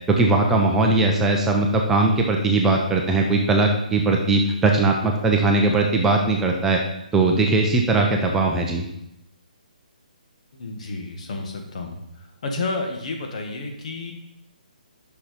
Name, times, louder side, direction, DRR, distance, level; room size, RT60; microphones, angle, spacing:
voice 1, 0.1-6.8 7.1-8.8, right 3 dB, 10° right, 1 dB, 0.6 m, -19 dB
voice 2, 10.6-12.0 12.4-14.1, left 3 dB, 55° left, 3 dB, 1.5 m, -30 dB
6.5 x 5.9 x 5.0 m, 0.82 s
hypercardioid pair, 155°, 5 cm